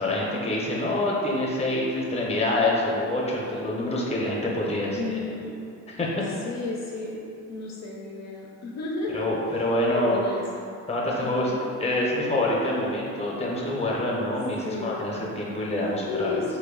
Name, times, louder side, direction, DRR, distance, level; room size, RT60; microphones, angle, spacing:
voice 1, 0.0-5.2 5.9-6.1 9.1-10.2 10.9-11.5 11.8-16.4, left 1 dB, 20° left, -4 dB, 0.7 m, -26 dB
voice 2, 5.0-5.6 6.2-7.2 7.5-9.2 9.9-10.7 11.2-11.6 14.6-15.1 16.0-16.6, left 3 dB, 60° left, -3 dB, 0.5 m, -33 dB
3.0 x 2.2 x 3.6 m, 2.5 s
cardioid pair, 90°, 30 cm